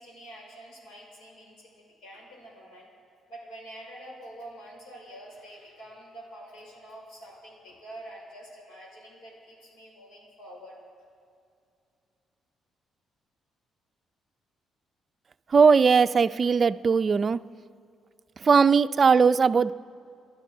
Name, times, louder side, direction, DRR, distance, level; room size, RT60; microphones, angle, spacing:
voice 1, 0.0-2.9 3.3-10.8, right 1 dB, 85° left, -2 dB, 5.0 m, -46 dB
voice 2, 15.5-17.4 18.4-19.7, right 5 dB, 40° right, 12 dB, 0.4 m, -19 dB
29.0 x 12.0 x 3.8 m, 2.3 s
cardioid pair, 90°, 0 cm